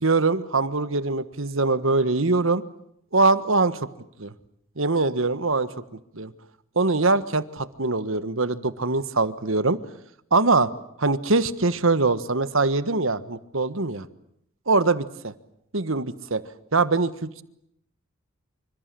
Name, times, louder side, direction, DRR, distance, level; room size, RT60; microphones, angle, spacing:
voice 1, 0.0-2.6 3.1-3.9 4.2-4.3 4.8-5.7 6.1-6.3 6.7-9.8 10.3-10.7 11.0-14.1 14.7-15.0 15.7-16.4 16.7-17.4, right 3 dB, 70° right, 14 dB, 1.5 m, -22 dB
27.0 x 26.0 x 7.7 m, 0.76 s
head